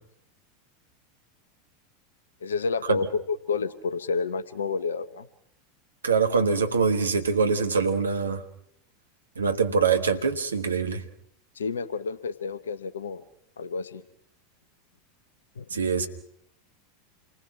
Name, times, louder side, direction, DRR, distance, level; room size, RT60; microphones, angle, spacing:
voice 1, 2.4-5.3 11.5-13.2 13.6-14.0 15.6-15.7 15.9-16.0, left 4 dB, 75° left, 12 dB, 0.9 m, -30 dB
voice 2, 6.0-8.4 9.4-11.0 15.7-16.1, right 5 dB, 80° right, 7 dB, 1.4 m, -24 dB
28.5 x 20.0 x 5.9 m, 0.72 s
figure-of-eight pair, 85°, 0 cm